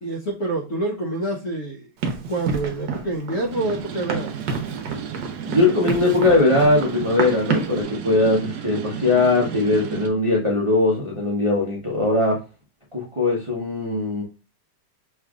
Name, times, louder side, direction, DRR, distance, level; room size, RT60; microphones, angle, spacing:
voice 1, 0.0-4.4, right 2 dB, 50° left, -2 dB, 0.9 m, -27 dB
Run, 2.0-7.8, right 4 dB, 65° right, 1.3 m, -29 dB
sound 1, 3.5-10.1, right 8 dB, 85° right, 0.8 m, -33 dB
voice 2, 5.5-12.4 12.9-14.2, left 2 dB, 30° right, -4 dB, 0.6 m, -20 dB
6.2 x 3.2 x 2.4 m, 0.32 s
omnidirectional pair, 2.4 m